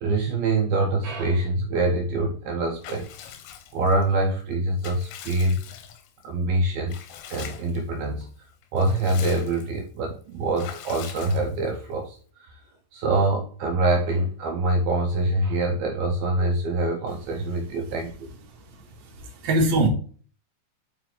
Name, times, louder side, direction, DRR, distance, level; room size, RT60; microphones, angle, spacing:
voice 1, 0.0-3.1 3.7-5.6 6.2-7.0 7.3-8.3 8.7-12.6 12.9-18.3, right 2 dB, 85° right, 1 dB, 2.1 m, -25 dB
Water / Bathtub (filling or washing) / Liquid, 2.8-4.1 4.5-6.2 6.9-7.8 8.2-8.3 8.6-9.8 10.6-11.8, left 9 dB, 90° left, 3.3 m, -42 dB
voice 2, 18.5-19.9, right 2 dB, 65° right, 0 dB, 1.8 m, -24 dB
7.7 x 4.9 x 3.1 m, 0.42 s
omnidirectional pair, 5.7 m